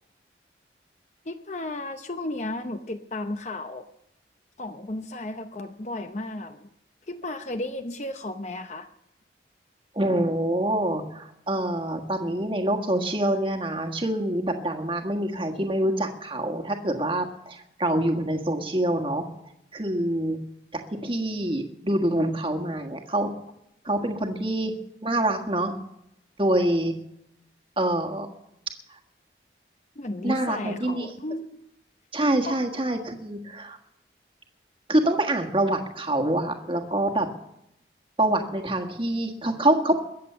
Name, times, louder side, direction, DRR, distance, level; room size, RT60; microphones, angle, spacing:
voice 1, 1.2-3.9 4.6-6.7 7.1-8.9 30.0-31.6 32.5-32.6, left 2 dB, 40° left, 8 dB, 0.7 m, -34 dB
voice 2, 9.9-19.2 19.7-20.4 20.7-23.3 23.8-24.7 25.0-25.7 26.4-26.9 27.8-28.3 28.9-29.0 30.2-31.1 32.1-33.8 34.9-37.3 38.2-39.9, right 1 dB, 30° right, 3 dB, 1.5 m, -26 dB
21.5 x 8.1 x 6.8 m, 0.80 s
head